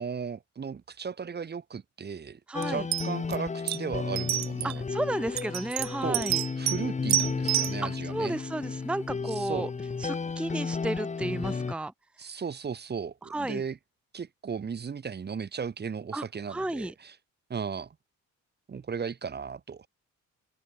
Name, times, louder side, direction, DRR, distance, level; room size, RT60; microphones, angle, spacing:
voice 1, 0.0-2.4 2.7-4.8 6.0-6.3 6.6-8.4 9.4-9.7 12.2-13.8 14.1-17.1 17.5-17.9 18.7-19.9, right 6 dB, 35° right, 1.2 m, -36 dB
sound 1, 2.5-11.7, left 4 dB, 25° left, 1.1 m, -33 dB
voice 2, 2.5-2.9 4.6-6.4 7.8-9.7 10.0-11.9 13.2-13.6 16.1-16.9, right 1 dB, 5° right, 0.8 m, -33 dB
sound 2, 2.6-2.7 2.9-3.4 3.7-3.8 4.2-4.7 5.4-6.8 7.1-7.7, right 14 dB, 65° right, 0.6 m, -28 dB
cardioid pair, 90°, 30 cm